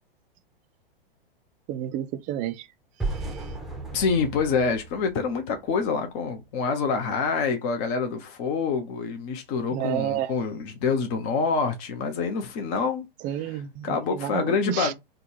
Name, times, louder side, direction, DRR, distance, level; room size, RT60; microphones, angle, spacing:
voice 1, 1.7-2.7 3.0-3.5 9.7-10.3 13.2-14.9, right 12 dB, 25° right, 0.5 m, -31 dB
sound 1, 3.0-6.0, right 3 dB, ahead, 0.8 m, -35 dB
voice 2, 3.9-13.1 13.8-14.9, left 5 dB, 40° left, 1.0 m, -26 dB
3.8 x 2.4 x 4.4 m
figure-of-eight pair, 105°, 29 cm